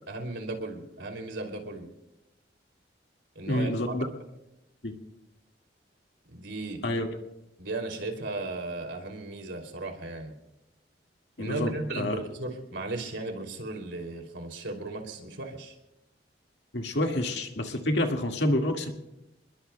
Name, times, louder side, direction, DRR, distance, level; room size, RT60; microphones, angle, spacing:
voice 1, 0.1-1.9 3.3-3.9 6.3-6.9 7.6-10.3 11.4-15.8, right 2 dB, 85° right, 3 dB, 2.9 m, -36 dB
voice 2, 3.5-4.1 4.8-4.9 6.8-7.1 11.4-12.2 16.7-18.9, left 1 dB, 70° left, 2 dB, 1.9 m, -28 dB
29.0 x 21.0 x 2.3 m, 0.93 s
head